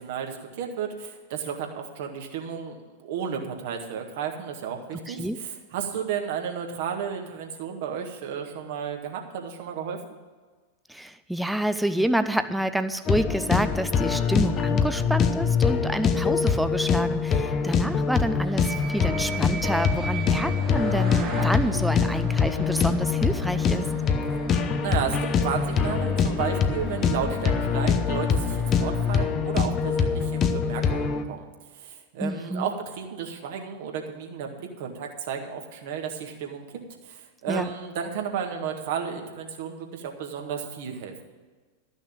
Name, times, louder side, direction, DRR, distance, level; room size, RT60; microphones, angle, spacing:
voice 1, 0.0-10.0 24.8-31.4 31.7-41.1, right 7 dB, 50° right, 3 dB, 1.8 m, -33 dB
voice 2, 5.1-5.4 10.9-23.9 32.2-32.7 37.5-37.7, right 1 dB, ahead, 11 dB, 0.7 m, -28 dB
sound 1, 13.1-31.2, left 6 dB, 30° left, 0.8 m, -24 dB
sound 2, 18.5-29.3, right 5 dB, 30° right, 1.5 m, -39 dB
13.0 x 6.4 x 8.8 m, 1.4 s
figure-of-eight pair, 90°, 0 cm